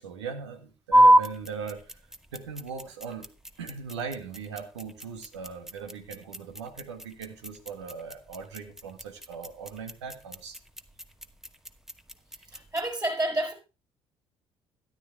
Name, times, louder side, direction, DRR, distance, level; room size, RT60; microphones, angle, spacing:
voice 1, 0.0-2.0 2.3-3.3 3.6-10.6 12.5-12.6, right 5 dB, 85° right, 1.7 m, -39 dB
sound 1, 0.9-12.9, right 1 dB, 5° right, 1.1 m, -28 dB
voice 2, 12.5-13.5, right 1 dB, 25° right, 4.9 m, -29 dB
13.0 x 10.5 x 3.4 m
hypercardioid pair, 50°, 14 cm